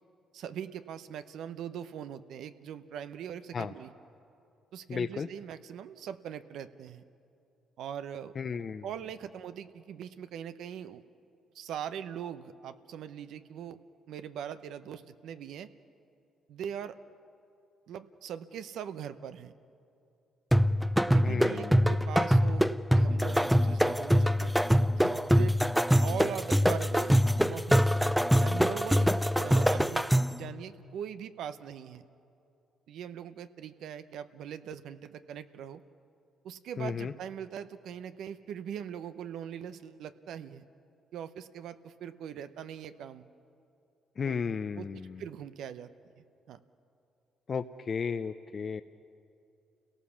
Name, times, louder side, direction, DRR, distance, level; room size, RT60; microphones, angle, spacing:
voice 1, 0.3-3.9 4.7-7.0 7.8-8.3 8.8-11.0 11.5-13.8 14.1-15.7 16.5-17.0 17.9-19.5 21.0-22.7 22.9-24.5 24.9-25.6 26.0-27.8 28.4-32.0 32.9-35.8 36.4-40.6 41.1-43.2 44.2-44.4 44.8-45.9 46.2-46.6, right 9 dB, 80° right, 12 dB, 0.7 m, -41 dB
voice 2, 4.9-5.3 8.4-8.9 21.2-21.9 36.8-37.1 44.2-45.2 47.5-48.8, left 6 dB, 45° left, 9 dB, 0.5 m, -34 dB
sound 1, 20.5-30.4, equal, 5° right, 0.5 m, -24 dB
29.0 x 17.5 x 7.1 m, 2.6 s
cardioid pair, 90°, 0 cm